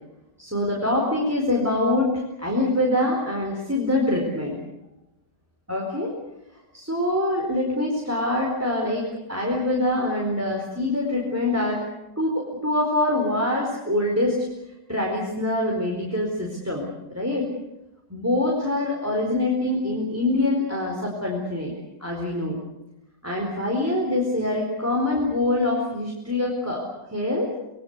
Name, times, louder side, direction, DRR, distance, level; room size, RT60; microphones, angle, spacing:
voice 1, 0.4-2.1 2.4-4.6 5.7-6.1 6.7-11.8 12.2-14.5 14.9-16.9 17.1-17.5 18.1-21.7 22.0-22.6 23.2-26.8 27.1-27.5, left 1 dB, 10° right, -1 dB, 4.6 m, -24 dB
28.0 x 21.5 x 8.3 m, 0.89 s
omnidirectional pair, 1.9 m